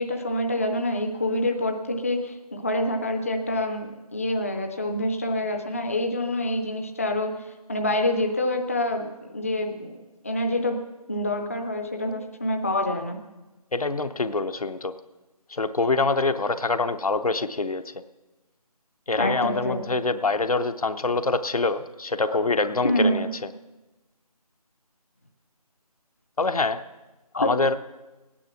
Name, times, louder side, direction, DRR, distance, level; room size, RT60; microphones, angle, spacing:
voice 1, 0.0-7.3 7.7-10.0 10.2-10.8 11.1-13.2 19.2-19.8 22.8-23.3 27.3-27.5, left 1 dB, 25° left, 4 dB, 0.5 m, -26 dB
voice 2, 13.7-14.9 15.5-17.8 19.1-23.5 26.4-26.8 27.4-27.8, left 3 dB, 70° left, 10 dB, 0.8 m, -25 dB
16.0 x 9.9 x 5.9 m, 1.1 s
figure-of-eight pair, 160°, 20 cm